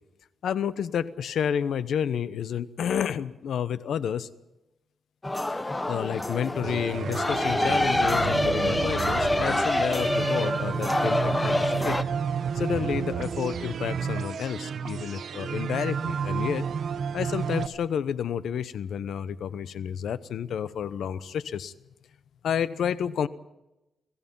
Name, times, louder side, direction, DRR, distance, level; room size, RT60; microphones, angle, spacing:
voice 1, 0.4-4.3 5.5-12.0 12.5-16.6 17.1-21.7 22.4-23.3, left 8 dB, 80° left, 14 dB, 0.9 m, -30 dB
sound 1, 5.2-12.0, left 1 dB, 15° left, 1.0 m, -26 dB
sound 2, 6.6-17.7, right 7 dB, 60° right, 1.0 m, -31 dB
29.5 x 17.0 x 5.5 m, 0.96 s
wide cardioid pair, 130°, 0 cm